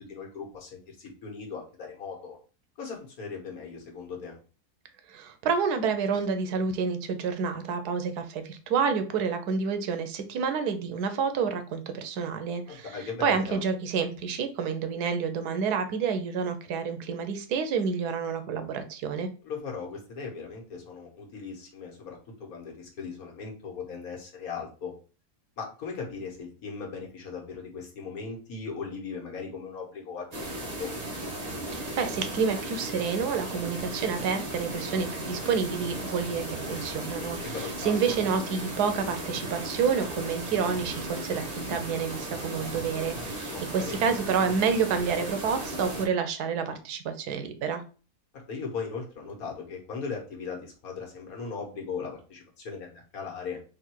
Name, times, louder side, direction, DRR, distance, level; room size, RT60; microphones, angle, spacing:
voice 1, 0.0-2.4 2.8-4.4 12.7-13.6 19.4-24.9 25.6-30.9 37.5-38.1 43.2-44.0 48.3-53.6, left 5 dB, 65° left, 0 dB, 1.6 m, -38 dB
voice 2, 5.1-19.3 31.7-47.8, right 6 dB, 85° right, 8 dB, 1.2 m, -29 dB
sound 1, 30.3-46.0, right 1 dB, 30° right, 0.9 m, -36 dB
3.8 x 2.6 x 4.3 m, 0.36 s
omnidirectional pair, 1.7 m